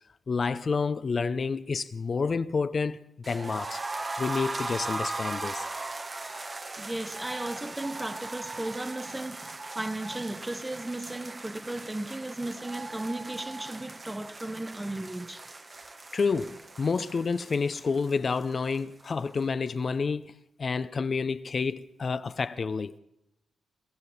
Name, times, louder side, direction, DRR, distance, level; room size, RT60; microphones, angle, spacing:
voice 1, 0.3-3.8 4.2-5.7 16.1-20.3 20.6-22.9, left 5 dB, 50° left, 0.6 m, -29 dB
sound 1, 3.2-19.1 19.3-19.4 19.8-19.9, right 2 dB, 35° right, 1.1 m, -39 dB
voice 2, 6.8-15.5, right 1 dB, 15° right, 1.1 m, -35 dB
23.0 x 15.0 x 4.1 m
supercardioid pair, 50°, 0 cm